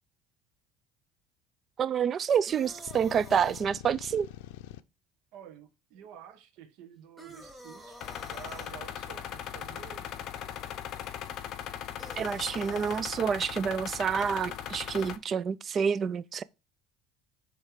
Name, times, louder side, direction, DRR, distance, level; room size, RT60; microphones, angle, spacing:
voice 1, 1.8-4.3 12.2-16.4, right 7 dB, 35° right, 0.4 m, -28 dB
sound 1, 2.1-3.7 7.2-8.7 12.0-13.1, right 1 dB, 10° right, 1.4 m, -49 dB
sound 2, 2.9-4.8, left 13 dB, 90° left, 0.5 m, -45 dB
voice 2, 5.3-10.5, right 9 dB, 70° right, 1.4 m, -50 dB
sound 3, 8.0-15.2, left 9 dB, 55° left, 0.8 m, -39 dB
8.0 x 3.3 x 4.9 m
supercardioid pair, 115°, 0 cm